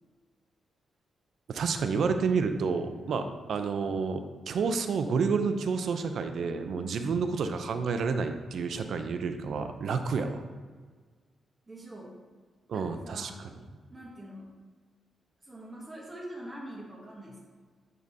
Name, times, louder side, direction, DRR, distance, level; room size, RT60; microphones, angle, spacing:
voice 1, 1.5-4.2 4.5-10.4 12.7-13.5, right 5 dB, 65° right, 8 dB, 0.5 m, -29 dB
voice 2, 11.7-12.2 12.7-13.4 13.9-14.6 15.4-17.4, right 1 dB, 15° right, -4 dB, 1.2 m, -44 dB
7.5 x 5.1 x 2.8 m, 1.5 s
cardioid pair, 110°, 0 cm